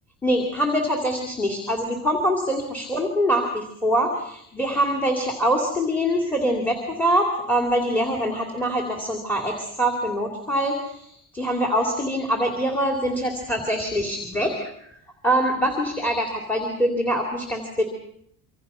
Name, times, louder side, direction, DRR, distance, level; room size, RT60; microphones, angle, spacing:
voice 1, 0.2-15.0 15.2-17.8, equal, 5° left, 2 dB, 2.7 m, -24 dB
26.5 x 24.5 x 5.6 m, 0.70 s
cardioid pair, 180°, 35 cm